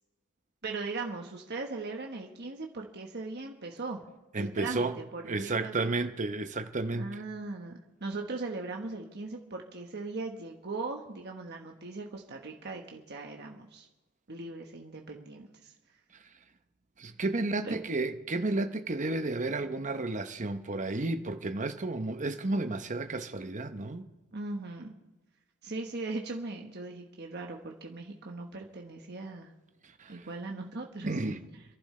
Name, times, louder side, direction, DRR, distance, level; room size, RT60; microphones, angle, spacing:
voice 1, 0.6-4.0 4.4-4.9 5.1-5.9 6.9-13.9 14.3-15.7 17.6-17.8 24.3-24.9 25.6-29.5 30.1-31.1, right 3 dB, 50° right, 1.3 m, -39 dB
voice 2, 4.3-5.0 5.3-7.2 17.0-24.1 30.0-30.3 31.0-31.4, right 2 dB, 35° right, 0.8 m, -32 dB
28.5 x 11.5 x 3.3 m
head